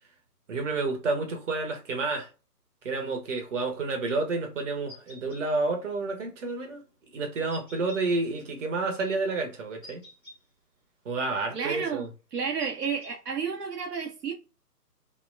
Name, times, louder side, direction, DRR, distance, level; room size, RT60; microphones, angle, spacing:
voice 1, 0.5-2.3 2.8-6.8 7.1-10.0 11.0-12.1, right 3 dB, 50° right, 0.9 m, -30 dB
sound 1, 4.9-5.4 7.5-8.0 9.8-10.4 12.6-13.1, left 2 dB, 10° left, 0.5 m, -48 dB
voice 2, 11.5-14.3, right 6 dB, 75° right, 0.7 m, -31 dB
2.7 x 2.1 x 2.4 m
figure-of-eight pair, 135°, 48 cm